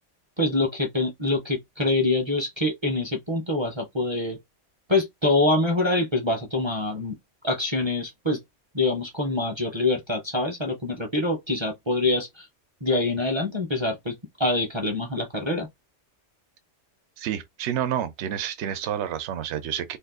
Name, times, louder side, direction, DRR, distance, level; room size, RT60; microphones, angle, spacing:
voice 1, 0.4-4.4 4.9-7.1 7.4-8.4 8.7-12.5 12.8-15.7, left 2 dB, 30° right, 0.5 m, -25 dB
voice 2, 17.2-20.0, right 10 dB, 70° right, 0.9 m, -29 dB
2.7 x 2.3 x 3.5 m
omnidirectional pair, 1.3 m